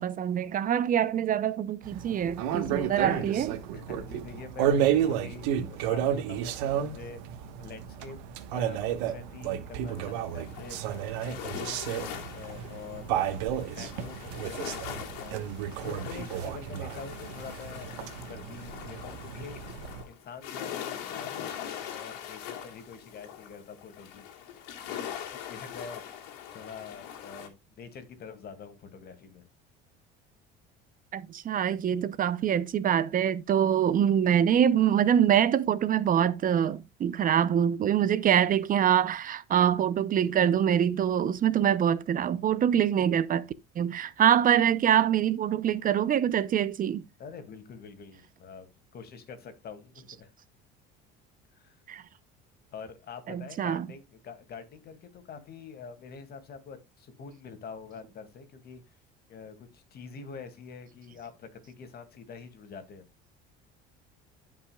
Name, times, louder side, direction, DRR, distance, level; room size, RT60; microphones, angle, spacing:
voice 1, 0.0-3.5 31.1-43.4 43.8-47.0 51.9-52.0 53.3-53.9, right 9 dB, 40° right, 0.7 m, -25 dB
sound 1, 1.8-20.0, right 9 dB, 85° right, 1.3 m, -32 dB
voice 2, 3.0-3.3 3.7-7.2 7.6-8.2 8.5-10.8 11.2-13.3 13.7-15.5 15.8-19.6 20.1-24.2 24.9-26.0 26.5-29.4 47.2-48.7 48.9-50.3 51.6-51.8 52.7-58.8 59.3-63.1, left 5 dB, 50° left, 2.3 m, -45 dB
sound 2, 9.9-27.5, left 9 dB, 90° left, 2.5 m, -42 dB
15.5 x 5.7 x 2.3 m
supercardioid pair, 100°, 21 cm